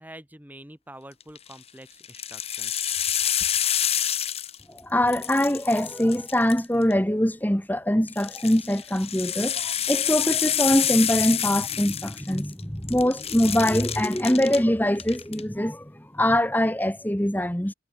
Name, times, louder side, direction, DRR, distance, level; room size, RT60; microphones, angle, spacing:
voice 1, 0.0-2.8, right 1 dB, 10° right, 4.0 m, -46 dB
sound 1, 1.2-1.5 2.0-4.8 5.1-6.9 8.1-12.6 12.9-14.6 15.0-15.4, left 10 dB, 30° left, 2.8 m, -28 dB
voice 2, 4.7-17.7, left 1 dB, 10° left, 1.5 m, -23 dB
head